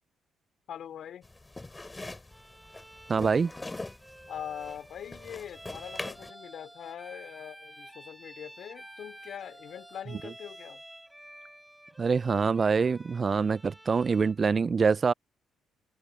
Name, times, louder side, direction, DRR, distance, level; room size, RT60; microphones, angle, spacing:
voice 1, 0.7-1.3 4.3-10.8, left 9 dB, 65° left, 3.9 m, -42 dB
sound 1, 1.2-6.3, left 2 dB, 20° left, 6.7 m, -43 dB
Bowed string instrument, 2.3-14.4, right 1 dB, 5° right, 7.2 m, -50 dB
voice 2, 3.1-3.5 12.0-15.1, right 5 dB, 40° right, 0.4 m, -25 dB
supercardioid pair, 60°, 0 cm